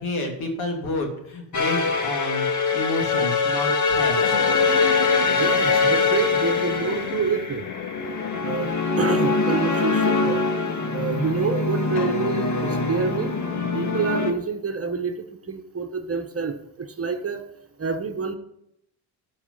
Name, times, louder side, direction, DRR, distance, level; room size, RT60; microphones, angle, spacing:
voice 1, 0.0-2.5 2.7-4.5, left 2 dB, 75° left, 2 dB, 3.0 m, -29 dB
sound 1, 1.5-14.3, left 4 dB, 35° left, 1.9 m, -23 dB
sound 2, 4.2-8.8 9.6-9.7 11.8-14.4, left 9 dB, 55° left, 0.8 m, -34 dB
voice 2, 5.3-7.6 8.4-10.4 10.9-13.3 13.7-17.4 17.8-18.3, right 5 dB, 30° right, 7 dB, 1.3 m, -27 dB
12.5 x 5.8 x 5.6 m, 0.79 s
supercardioid pair, 75°, 49 cm